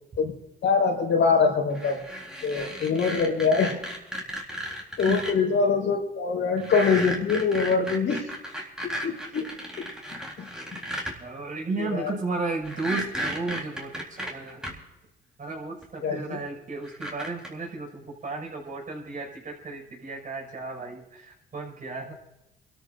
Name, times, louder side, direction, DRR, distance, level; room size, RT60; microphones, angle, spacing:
voice 1, 0.6-2.0 2.4-3.8 5.0-8.3 8.8-10.8 11.8-12.1 16.0-16.4, left 5 dB, 75° left, -1 dB, 4.8 m, -24 dB
sound 1, 1.7-5.3 6.6-11.1 12.6-14.7 15.8-15.9 16.8-17.5, equal, 5° right, 3.7 m, -34 dB
voice 2, 11.2-14.7 15.4-22.1, right 3 dB, 40° right, 0 dB, 5.8 m, -34 dB
28.0 x 13.5 x 2.6 m, 0.98 s
cardioid pair, 90°, 20 cm